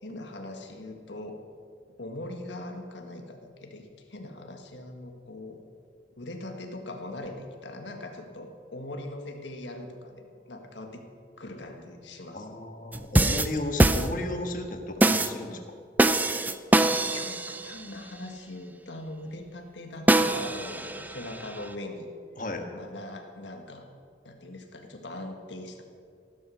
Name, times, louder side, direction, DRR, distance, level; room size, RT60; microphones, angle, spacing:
voice 1, 0.0-1.4 2.0-5.6 6.2-11.0 11.4-12.6 15.0-15.1 16.8-22.1 22.7-23.9 24.2-25.8, left 1 dB, 90° left, 4 dB, 1.7 m, -41 dB
voice 2, 12.3-15.6 22.4-22.6, left 2 dB, 45° left, 4 dB, 1.5 m, -34 dB
sound 1, 12.9-14.5 15.0-15.4 16.0-17.9 20.1-21.7, right 1 dB, 10° right, 0.4 m, -24 dB
15.0 x 12.0 x 6.4 m, 2.2 s
head